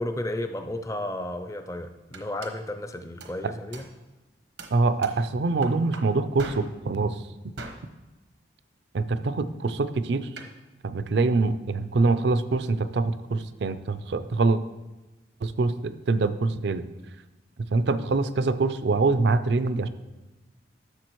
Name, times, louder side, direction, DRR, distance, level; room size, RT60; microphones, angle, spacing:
voice 1, 0.0-3.8, left 1 dB, 15° left, 8 dB, 0.4 m, -33 dB
sound 1, 1.7-1.8 2.1-2.6 3.2-3.4 3.7-4.0 4.6-5.3 5.6-6.8 7.6-7.9 10.4-10.6, right 3 dB, 80° right, 1.0 m, -41 dB
voice 2, 4.7-7.2 8.9-10.3 10.8-14.6 15.4-16.8 17.7-19.9, right 3 dB, 65° right, 12 dB, 0.4 m, -24 dB
12.0 x 6.8 x 3.1 m, 1.1 s
head